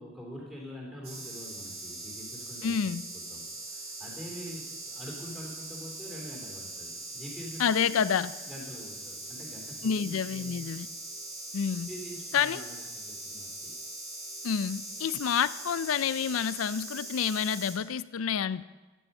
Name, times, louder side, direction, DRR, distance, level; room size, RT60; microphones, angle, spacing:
voice 1, 0.0-2.7 3.3-10.8 11.9-13.8, equal, ahead, -4 dB, 3.2 m, -45 dB
sound 1, 1.0-17.7, right 2 dB, 30° right, 2.3 m, -41 dB
voice 2, 2.6-3.0 7.6-8.3 9.8-10.9 11.5-11.9 12.3-12.7 14.4-18.6, left 7 dB, 85° left, 16 dB, 0.4 m, -28 dB
14.5 x 9.5 x 5.5 m, 1.2 s
head